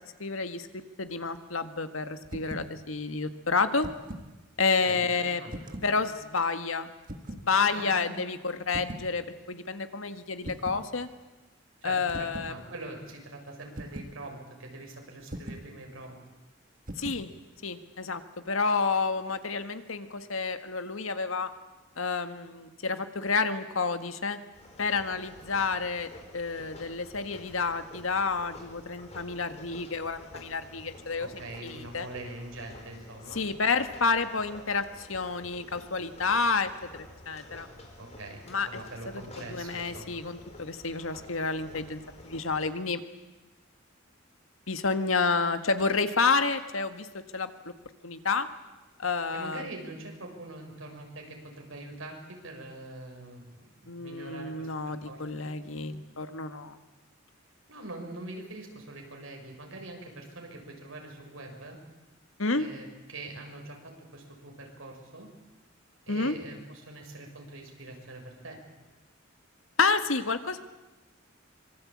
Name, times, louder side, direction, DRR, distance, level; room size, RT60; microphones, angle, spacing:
voice 1, 0.2-0.7 1.0-3.9 4.6-5.4 5.8-6.9 7.3-11.1 11.8-12.5 17.0-17.3 17.6-18.2 18.5-21.5 22.0-24.4 24.8-32.1 33.3-37.7 38.5-38.8 39.1-43.0 44.7-47.1 47.3-47.7 48.0-48.5 49.0-49.7 53.9-56.8 62.4-62.7 66.1-66.4 69.8-70.6, left 4 dB, 85° left, 9 dB, 1.8 m, -29 dB
sound 1, 2.2-2.7 3.6-4.3 5.5-6.0 7.0-7.5 8.7-9.1 10.4-10.9 12.1-12.6 13.8-14.2 15.3-15.7 16.9-17.3, right 1 dB, 40° right, 1.9 m, -40 dB
voice 2, 4.8-5.8 7.7-8.3 11.8-16.2 31.2-33.4 38.0-40.2 49.3-55.4 57.7-61.8 62.5-65.3 66.1-68.6, right 2 dB, 85° right, 2 dB, 6.4 m, -43 dB
sound 2, 24.5-42.7, left 1 dB, 30° left, 4.9 m, -50 dB
25.0 x 23.0 x 8.7 m, 1.1 s
head